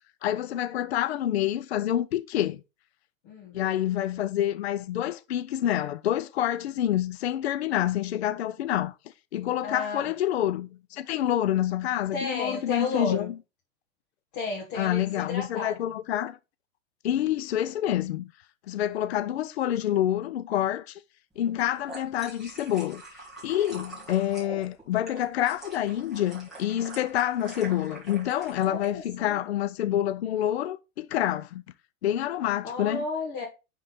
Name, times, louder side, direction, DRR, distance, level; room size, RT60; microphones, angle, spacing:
voice 1, 0.2-2.6 3.5-8.9 9.3-13.3 14.7-16.4 17.0-18.3 18.7-21.0 21.4-23.0 23.4-31.6 32.0-33.0, left 12 dB, 55° left, 0.5 m, -27 dB
voice 2, 3.2-3.6 9.6-10.1 12.1-13.3 14.3-15.9 28.6-29.4 32.6-33.5, left 3 dB, 30° left, 1.6 m, -33 dB
sound 1, 21.4-28.9, right 2 dB, ahead, 1.9 m, -44 dB
9.9 x 3.8 x 4.0 m
supercardioid pair, 175°, 41 cm